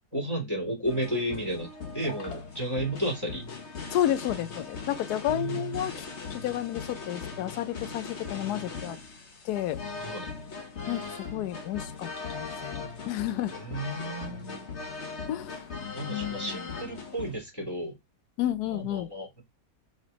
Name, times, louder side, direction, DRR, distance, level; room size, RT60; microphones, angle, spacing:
voice 1, 0.1-1.7 1.9-3.5 5.3-5.7 10.0-10.3 13.5-14.7 15.9-18.0 18.7-19.4, right 1 dB, 15° left, 2.9 m, -33 dB
sound 1, 0.8-17.4, left 4 dB, 50° left, 1.5 m, -39 dB
voice 2, 3.9-5.9 6.3-9.0 9.4-9.8 10.9-13.6 15.3-15.6 16.1-16.6 18.4-19.1, left 12 dB, 85° left, 1.2 m, -31 dB
5.4 x 3.9 x 5.1 m
omnidirectional pair, 1.6 m